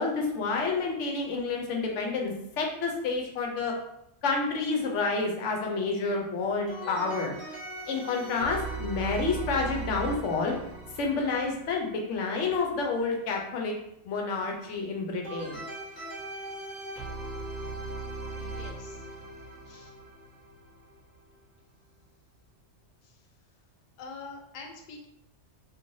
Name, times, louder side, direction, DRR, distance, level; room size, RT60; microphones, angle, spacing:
voice 1, 0.0-3.7 4.2-7.4 7.9-10.5 11.0-13.8 14.0-15.6, left 4 dB, 85° left, 1 dB, 1.0 m, -29 dB
sound 1, 6.7-12.3 15.2-21.3, right 3 dB, 20° right, 1.2 m, -39 dB
voice 2, 18.3-19.1 19.7-19.9 23.0-23.2 24.0-25.1, left 4 dB, 55° left, 1 dB, 0.6 m, -45 dB
3.1 x 2.5 x 2.6 m, 0.81 s
omnidirectional pair, 1.2 m